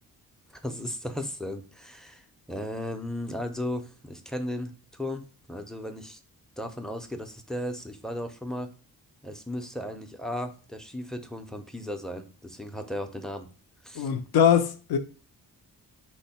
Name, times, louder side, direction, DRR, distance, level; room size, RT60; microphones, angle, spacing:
voice 1, 0.6-6.2 6.6-8.7 9.2-13.5 13.8-14.1, left 1 dB, ahead, 0.4 m, -35 dB
voice 2, 14.0-15.0, left 8 dB, 85° left, 0.5 m, -22 dB
4.3 x 2.1 x 4.1 m
cardioid pair, 95°, 37 cm